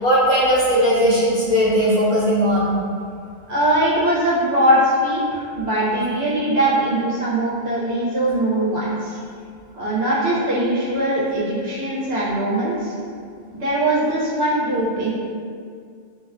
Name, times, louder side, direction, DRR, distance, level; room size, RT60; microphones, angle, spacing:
voice 1, 0.0-2.8, equal, 35° left, -14 dB, 1.0 m, -18 dB
voice 2, 3.5-9.2 9.7-12.9 13.5-15.1, right 1 dB, 70° right, -8 dB, 0.8 m, -21 dB
2.4 x 2.3 x 2.2 m, 2.2 s
omnidirectional pair, 1.2 m